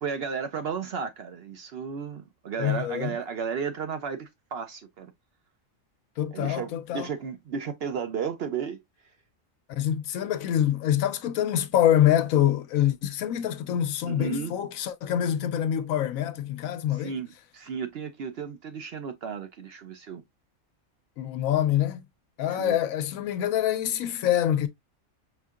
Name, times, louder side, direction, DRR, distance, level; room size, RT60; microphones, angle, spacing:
voice 1, 0.0-5.1 6.3-8.8 14.1-14.5 17.0-20.2 22.4-22.8, right 6 dB, 60° right, 0.7 m, -33 dB
voice 2, 2.6-3.1 6.2-7.1 9.7-17.2 21.2-22.0 22.4-24.7, left 11 dB, 85° left, 1.0 m, -25 dB
5.6 x 2.7 x 2.3 m
omnidirectional pair, 1.4 m